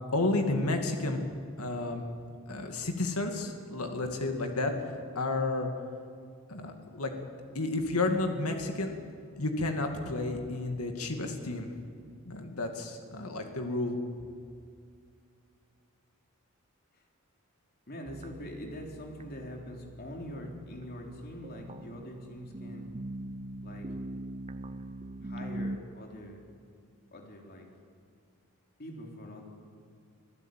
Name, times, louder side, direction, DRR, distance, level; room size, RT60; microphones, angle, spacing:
voice 1, 0.1-1.2 1.6-2.0 2.5-5.7 6.5-9.0 9.4-11.8 12.3-14.0, left 2 dB, 85° left, 4 dB, 2.4 m, -31 dB
voice 2, 17.9-22.9 23.6-23.9 25.1-26.4 27.1-27.7 28.8-29.4, equal, 45° left, 1 dB, 3.7 m, -43 dB
sound 1, 18.1-25.8, right 1 dB, 30° right, 0.7 m, -42 dB
26.0 x 16.5 x 9.2 m, 2.3 s
head